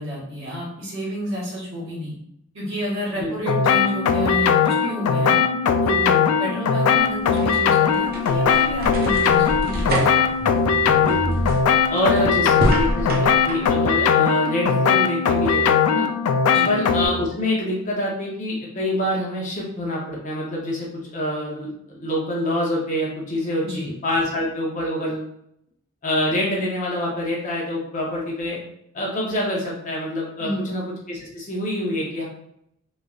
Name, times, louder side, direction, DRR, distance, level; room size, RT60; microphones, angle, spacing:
voice 1, 0.0-2.1 2.5-10.3 12.2-12.3 16.5-16.7 23.6-23.9 30.4-30.7, equal, 60° right, -6 dB, 1.3 m, -30 dB
sound 1, 3.5-17.1, left 6 dB, 80° left, 0.3 m, -19 dB
sound 2, 7.1-13.7, right 1 dB, 40° right, 0.5 m, -27 dB
voice 2, 11.0-11.4 11.9-16.1 16.7-20.9 21.1-25.3 26.0-28.6 28.9-32.3, left 1 dB, 35° left, -3 dB, 0.7 m, -26 dB
3.1 x 2.5 x 2.3 m, 0.74 s
head